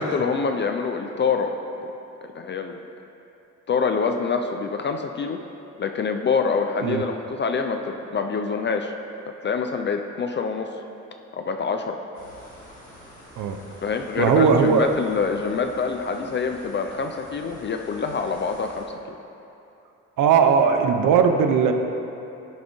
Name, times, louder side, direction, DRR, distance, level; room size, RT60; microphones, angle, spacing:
voice 1, 0.0-1.5 2.2-2.8 3.7-5.4 5.8-8.9 9.4-10.7 11.3-12.0 13.8-18.8, left 5 dB, 25° left, 5 dB, 0.4 m, -25 dB
sound 1, 12.1-18.9, equal, 90° left, 1.3 m, -47 dB
voice 2, 14.2-14.9 20.2-21.7, right 6 dB, 50° right, 6 dB, 0.7 m, -18 dB
11.0 x 5.0 x 3.4 m, 2.9 s
figure-of-eight pair, 40°, 43 cm